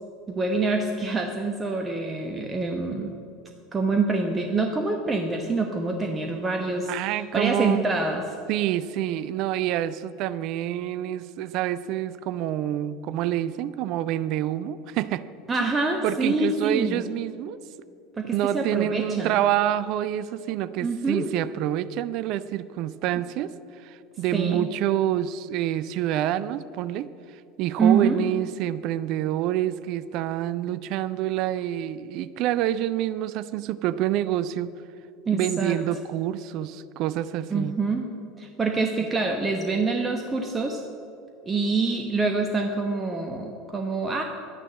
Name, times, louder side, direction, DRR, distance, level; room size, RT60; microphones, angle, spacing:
voice 1, 0.3-3.1 3.7-8.2 15.5-17.0 18.2-19.3 20.8-21.3 24.3-24.7 27.8-28.2 35.3-35.8 37.5-38.0 38.4-40.8 41.5-44.2, right 3 dB, 20° right, 4 dB, 1.0 m, -26 dB
voice 2, 6.9-7.9 8.5-15.3 15.6-15.7 16.0-17.6 18.3-34.7 35.3-37.7, right 12 dB, 50° right, 16 dB, 0.5 m, -27 dB
11.5 x 9.9 x 7.7 m, 2.6 s
figure-of-eight pair, 70°, 0 cm